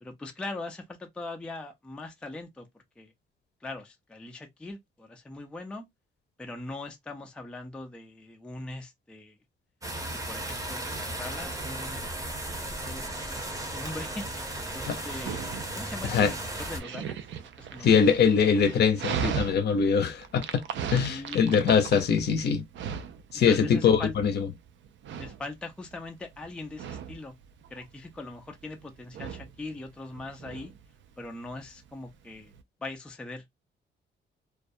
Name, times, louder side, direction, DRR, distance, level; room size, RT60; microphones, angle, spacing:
voice 1, 0.0-2.7 3.0-3.1 3.6-5.9 6.4-9.4 10.3-12.1 12.4-15.5 15.7-17.9 21.1-21.5 23.3-24.1 25.2-27.3 27.7-30.7 31.2-32.5 32.8-33.4, left 2 dB, 5° left, 0.3 m, -41 dB
sound 1, 9.8-16.8, right 1 dB, 15° right, 0.7 m, -35 dB
Dog, 13.4-32.6, right 8 dB, 70° right, 0.4 m, -39 dB
voice 2, 17.8-20.4 20.9-22.6 23.3-24.5, left 6 dB, 55° left, 0.6 m, -23 dB
2.3 x 2.1 x 2.5 m
cardioid pair, 155°, 20 cm